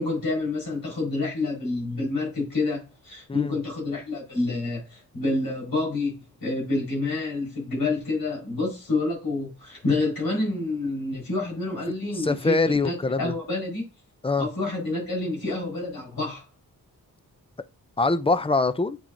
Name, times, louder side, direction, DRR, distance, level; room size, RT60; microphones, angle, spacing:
voice 1, 0.0-13.8 14.4-16.4, left 2 dB, 75° left, 4.4 m, -28 dB
voice 2, 12.1-13.3 14.2-14.5 18.0-19.0, left 3 dB, 15° left, 0.4 m, -23 dB
7.6 x 7.1 x 2.6 m
wide cardioid pair, 145°, 36 cm